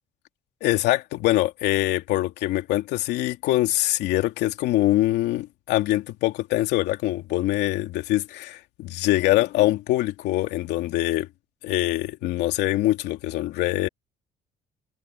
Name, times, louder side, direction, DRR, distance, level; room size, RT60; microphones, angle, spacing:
voice 1, 0.6-11.3 11.6-13.9, left 16 dB, 85° left, 2.8 m, -24 dB
cardioid pair, 110°, 17 cm